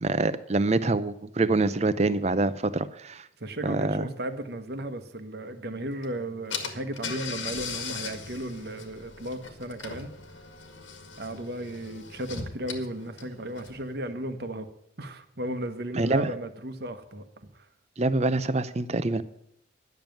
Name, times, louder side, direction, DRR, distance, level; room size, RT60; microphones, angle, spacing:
voice 1, 0.0-3.3 3.6-4.1 15.9-16.3 18.0-19.2, right 2 dB, 35° right, 14 dB, 0.6 m, -25 dB
voice 2, 3.4-10.1 11.2-14.7 15.0-17.6, right 1 dB, 55° right, 9 dB, 1.1 m, -35 dB
Car / Engine, 6.0-6.1 6.5-13.9, left 5 dB, 80° left, 1.9 m, -39 dB
10.5 x 7.1 x 9.1 m, 0.74 s
head